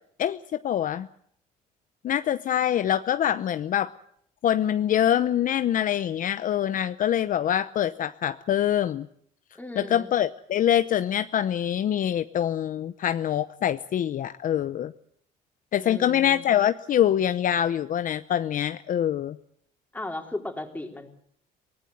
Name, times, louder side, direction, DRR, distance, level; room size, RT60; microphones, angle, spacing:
voice 1, 0.2-1.1 2.0-3.9 4.4-9.1 9.8-14.9 15.7-19.4, left 10 dB, 50° left, 11 dB, 0.8 m, -24 dB
voice 2, 9.6-10.1 15.8-16.5 19.9-21.1, left 2 dB, 10° left, 3 dB, 4.1 m, -36 dB
23.0 x 19.0 x 8.1 m, 0.65 s
cardioid pair, 110°, 17 cm